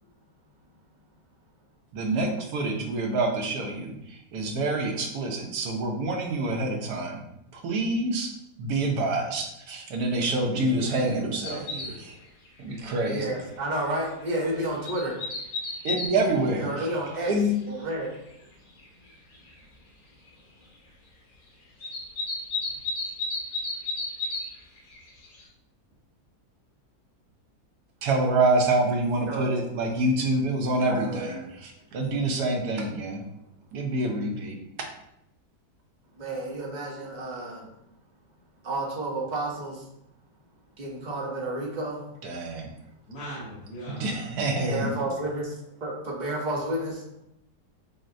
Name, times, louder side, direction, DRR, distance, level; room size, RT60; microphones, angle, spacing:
voice 1, 1.9-7.2 7.6-8.3 8.6-11.6 12.6-13.3 15.8-16.9 17.3-17.6 28.0-33.2 33.7-34.6 42.2-42.7 44.0-45.0, right 2 dB, 75° right, 2 dB, 1.2 m, -26 dB
voice 2, 10.4-12.2 43.0-44.3, right 1 dB, 65° left, -9 dB, 1.6 m, -38 dB
sound 1, 11.4-12.1 12.5-12.6 12.9-13.1 13.5-13.6 14.5-16.1 16.8-16.9 18.1-18.2 18.8-18.9 19.1-19.5 21.8-24.5 24.8-25.4, left 3 dB, 85° left, 1.5 m, -32 dB
voice 3, 13.0-15.2 16.6-17.3 17.7-18.1 29.3-29.5 30.8-31.4 36.2-37.6 38.6-39.8 40.8-42.0 44.7-45.5 45.8-47.0, right 1 dB, 40° right, -2 dB, 0.7 m, -31 dB
6.3 x 2.1 x 2.6 m, 0.81 s
omnidirectional pair, 1.7 m